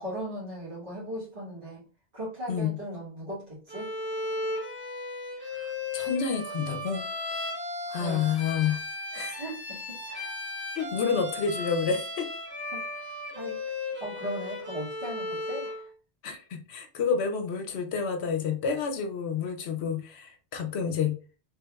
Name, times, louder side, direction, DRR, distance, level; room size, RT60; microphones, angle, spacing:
voice 1, 0.0-1.8 2.1-3.9 8.0-8.3 9.4-10.3 12.7-13.6 14.0-15.9, equal, 45° right, -9 dB, 1.6 m, -38 dB
Bowed string instrument, 3.7-15.8, left 2 dB, 10° right, 0.7 m, -35 dB
voice 2, 5.4-7.0 7.9-8.8 9.1-9.4 10.7-12.3 16.2-21.1, left 6 dB, 70° left, 5 dB, 0.9 m, -29 dB
3.3 x 3.2 x 2.3 m, 0.36 s
omnidirectional pair, 1.2 m